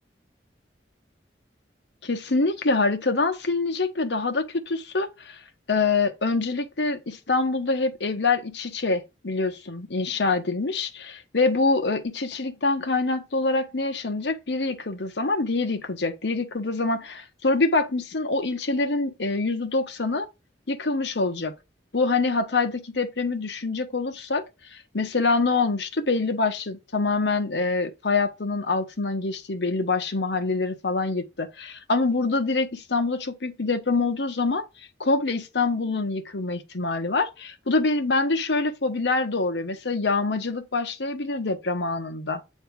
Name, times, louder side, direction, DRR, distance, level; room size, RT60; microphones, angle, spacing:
voice 1, 2.0-5.4 5.7-20.3 20.7-21.5 21.9-24.4 24.7-42.4, left 3 dB, 75° left, 1.0 m, -25 dB
8.2 x 3.3 x 4.7 m
head